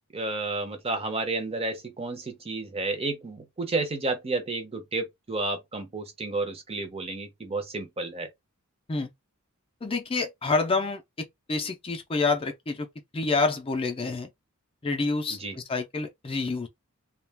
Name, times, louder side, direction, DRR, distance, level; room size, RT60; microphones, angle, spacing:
voice 1, 0.1-8.3 15.3-15.6, right 3 dB, 25° right, 0.6 m, -31 dB
voice 2, 9.8-12.9 13.1-14.3 14.8-16.7, left 3 dB, 25° left, 0.4 m, -28 dB
2.3 x 2.2 x 3.3 m
head